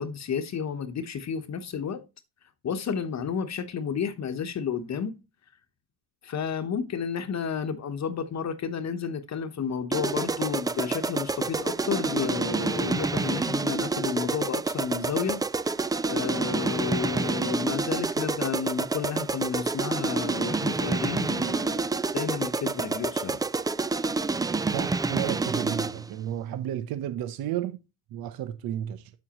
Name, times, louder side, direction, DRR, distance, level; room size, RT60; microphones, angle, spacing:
voice 1, 0.0-2.0 2.6-5.2 6.2-15.4 16.1-23.4, left 7 dB, 50° left, 1.1 m, -31 dB
sound 1, 9.9-26.1, right 3 dB, 10° right, 0.3 m, -28 dB
voice 2, 24.7-27.8 28.1-29.1, right 11 dB, 80° right, 0.9 m, -32 dB
7.9 x 7.4 x 3.0 m
cardioid pair, 95°, 35 cm